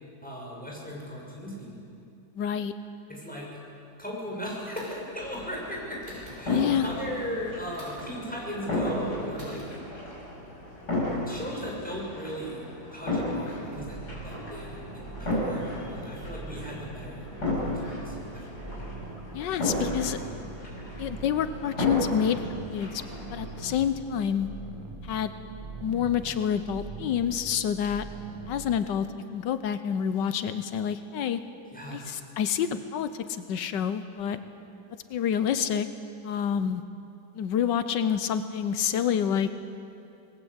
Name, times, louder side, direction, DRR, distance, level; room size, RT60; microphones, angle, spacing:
voice 1, 0.2-1.8 3.1-3.5 4.0-9.6 11.3-14.0 14.2-17.3 17.6-18.4 31.7-32.2, equal, 5° left, -4 dB, 6.6 m, -37 dB
voice 2, 2.4-2.7 6.5-6.9 19.3-20.2 21.0-22.4 22.7-23.0 23.3-24.5 25.0-25.3 25.8-28.0 28.5-29.1 29.3-31.4 31.9-34.4 35.1-35.9 36.2-36.8 37.3-39.5, left 8 dB, 85° left, 11 dB, 1.5 m, -28 dB
sound 1, 4.7-5.1 6.0-6.4 7.7-8.1 9.4-9.7, equal, 50° right, 6.7 m, -46 dB
sound 2, 5.2-23.7, left 1 dB, 65° left, 7.1 m, -34 dB
sound 3, 13.8-28.8, right 3 dB, 20° right, 1.3 m, -42 dB
26.5 x 20.0 x 8.1 m, 2.7 s
omnidirectional pair, 1.9 m